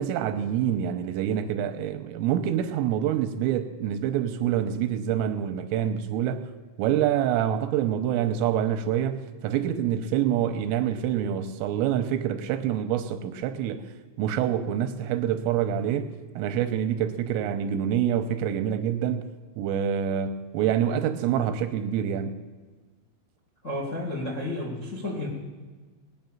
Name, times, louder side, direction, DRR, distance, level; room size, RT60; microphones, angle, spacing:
voice 1, 0.0-6.5 6.8-13.9 14.2-16.1 16.4-19.3 19.6-22.3, right 9 dB, 85° right, 9 dB, 3.3 m, -26 dB
voice 2, 23.6-25.3, left 1 dB, 50° left, -2 dB, 0.8 m, -31 dB
19.5 x 9.4 x 7.2 m, 1.3 s
omnidirectional pair, 6.0 m